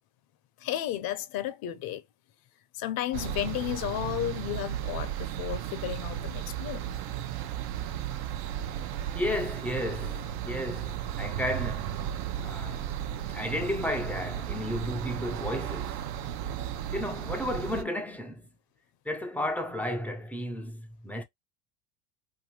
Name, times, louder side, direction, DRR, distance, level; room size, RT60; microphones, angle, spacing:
voice 1, 0.6-2.0 2.7-6.8, left 12 dB, 55° left, 0.6 m, -33 dB
sound 1, 3.1-17.8, right 10 dB, 75° right, 0.7 m, -35 dB
voice 2, 9.1-12.9 13.3-16.0 16.9-18.5 19.1-21.2, left 1 dB, 5° left, 0.3 m, -33 dB
2.7 x 2.6 x 2.8 m
supercardioid pair, 110°, 45 cm